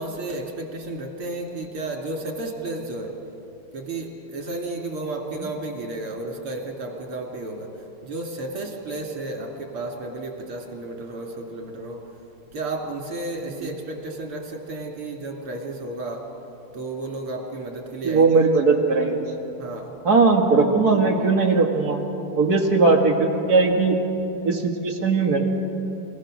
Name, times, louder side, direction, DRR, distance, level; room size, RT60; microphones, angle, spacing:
voice 1, 0.0-3.2 3.7-7.8 8.0-12.1 12.5-16.3 16.7-18.4 19.6-20.0, right 2 dB, 85° right, 2 dB, 3.3 m, -32 dB
voice 2, 18.0-19.2 20.0-22.0 22.4-24.0 24.4-25.4, right 3 dB, 45° right, 2 dB, 2.2 m, -19 dB
29.0 x 16.0 x 6.3 m, 3.0 s
omnidirectional pair, 2.3 m